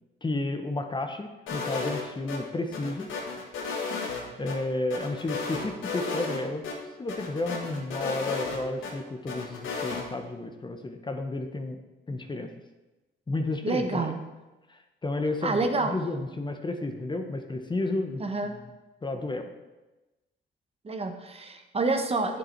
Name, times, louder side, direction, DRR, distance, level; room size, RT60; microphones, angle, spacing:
voice 1, 0.2-3.1 4.4-6.6 7.0-11.8 12.1-12.5 13.3-14.1 14.7-18.6 19.0-19.5, left 2 dB, 25° left, 6 dB, 1.0 m, -32 dB
sound 1, 1.5-2.4 2.7-4.6 4.9-6.4 6.6-6.8 7.1-8.9 9.3-10.0, left 4 dB, 85° left, 1.9 m, -33 dB
voice 2, 13.6-14.2 15.4-15.9 18.2-18.5 20.8-22.4, right 3 dB, 30° right, 6 dB, 1.0 m, -28 dB
9.5 x 7.7 x 4.5 m, 1.1 s
cardioid pair, 90°, 20 cm